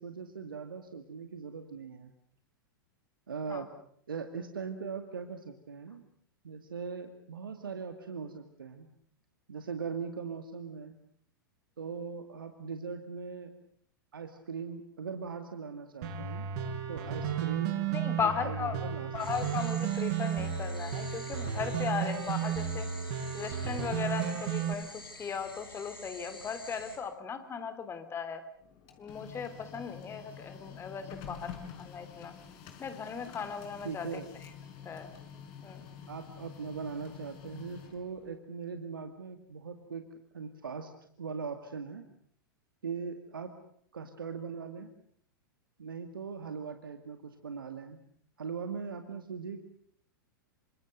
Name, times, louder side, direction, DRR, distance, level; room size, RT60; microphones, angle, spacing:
voice 1, 0.0-2.1 3.3-3.7 4.1-6.0 6.4-8.9 9.5-11.0 11.8-13.5 14.1-16.5 16.9-17.8 18.2-19.3 33.8-34.3 36.1-40.9 41.2-42.0 42.8-43.6 43.9-44.9 45.8-48.0 48.4-49.6, right 5 dB, 75° right, 7 dB, 2.2 m, -40 dB
sound 1, 16.0-24.7, right 8 dB, 50° right, 6.7 m, -33 dB
voice 2, 17.9-18.8 19.1-22.9 23.3-24.9 25.2-28.4 29.0-32.3 32.8-34.1 34.8-35.1 35.6-35.9, left 6 dB, 20° left, 10 dB, 3.1 m, -37 dB
sound 2, 19.2-27.0, left 2 dB, 85° left, 6.0 m, -49 dB
Printer, 28.6-38.4, left 7 dB, 45° left, 5.1 m, -48 dB
27.5 x 26.0 x 6.8 m, 0.63 s
figure-of-eight pair, 95°, 12 cm